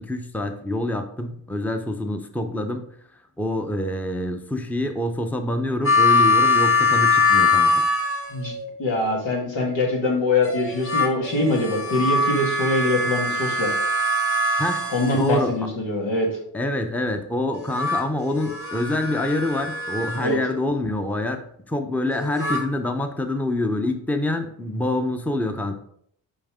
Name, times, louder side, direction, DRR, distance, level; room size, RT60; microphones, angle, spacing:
voice 1, 0.0-2.9 3.4-7.8 14.6-14.9 15.1-15.5 16.5-25.7, left 1 dB, 5° left, 6 dB, 0.7 m, -26 dB
sound 1, 5.8-8.7 10.4-15.6 17.5-20.4 22.1-22.6, left 3 dB, 30° left, 1.7 m, -22 dB
voice 2, 8.8-13.7 14.9-16.4 20.1-20.4, left 2 dB, 80° left, -1 dB, 1.8 m, -23 dB
5.3 x 5.2 x 3.6 m, 0.67 s
cardioid pair, 50°, 44 cm